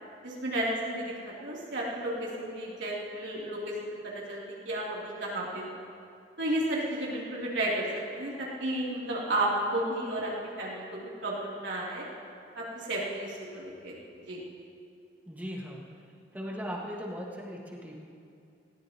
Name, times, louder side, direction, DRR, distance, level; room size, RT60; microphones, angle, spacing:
voice 1, 0.2-4.4 4.7-5.8 6.4-7.9 8.1-12.1 12.6-14.0 14.3-14.4, right 1 dB, 90° right, -5 dB, 3.3 m, -33 dB
voice 2, 15.3-15.8 16.3-18.0, equal, 10° right, -3 dB, 1.8 m, -38 dB
19.5 x 18.0 x 3.1 m, 2.4 s
head